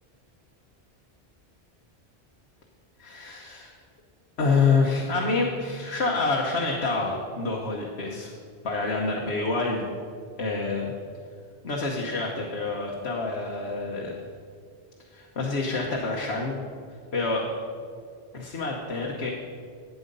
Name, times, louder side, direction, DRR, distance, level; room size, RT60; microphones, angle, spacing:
voice 1, 3.0-3.7 4.4-8.3 8.6-9.9 10.4-10.9 11.6-14.1 15.1-16.6 17.1-17.5 18.3-19.3, left 3 dB, 80° left, -1 dB, 1.4 m, -27 dB
12.5 x 8.5 x 5.4 m, 2.1 s
omnidirectional pair, 1.1 m